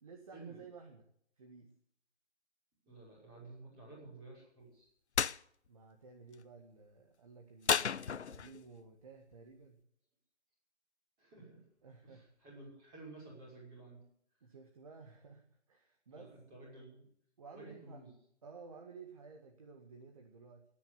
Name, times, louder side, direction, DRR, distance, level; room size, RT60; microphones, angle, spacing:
voice 1, 0.0-1.0 1.4-1.7 5.7-9.8 11.8-12.3 14.4-16.6 17.4-18.0 18.4-20.6, right 4 dB, 30° right, 4 dB, 1.8 m, -54 dB
voice 2, 2.8-4.9 11.2-11.6 12.0-14.0 16.1-17.0 17.5-18.1, right 2 dB, 10° right, -4 dB, 5.8 m, -53 dB
sound 1, 5.2-5.4 7.7-8.6, left 6 dB, 70° left, 0.7 m, -32 dB
17.5 x 10.0 x 8.3 m, 0.69 s
figure-of-eight pair, 165°, 35 cm